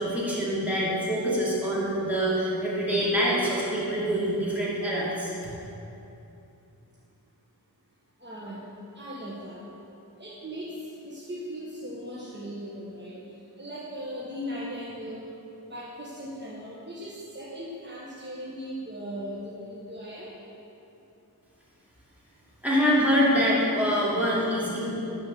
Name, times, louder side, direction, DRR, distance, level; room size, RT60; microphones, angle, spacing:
voice 1, 0.0-5.3 22.6-24.9, equal, 5° right, -7 dB, 2.5 m, -25 dB
voice 2, 8.2-8.7 8.9-9.6 10.2-10.7 11.0-13.2 13.6-15.3 15.7-20.3, equal, 25° right, -6 dB, 1.3 m, -38 dB
11.5 x 4.5 x 6.7 m, 2.8 s
wide cardioid pair, 75°, 39 cm